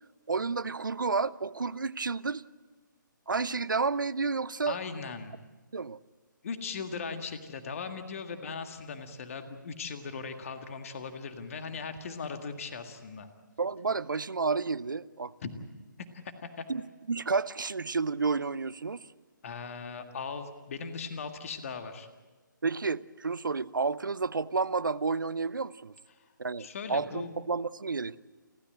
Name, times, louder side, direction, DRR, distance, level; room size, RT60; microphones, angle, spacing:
voice 1, 0.3-2.4 3.3-4.8 5.7-6.0 13.6-15.3 16.7-16.8 17.1-19.1 22.6-25.9 26.4-28.2, right 4 dB, 70° right, 19 dB, 0.7 m, -31 dB
voice 2, 4.7-5.3 6.4-13.3 15.4-15.5 16.2-16.6 19.4-22.1 26.2-26.3 26.6-27.3, left 5 dB, 40° left, 7 dB, 1.8 m, -39 dB
30.0 x 13.5 x 7.8 m, 1.3 s
figure-of-eight pair, 140°, 11 cm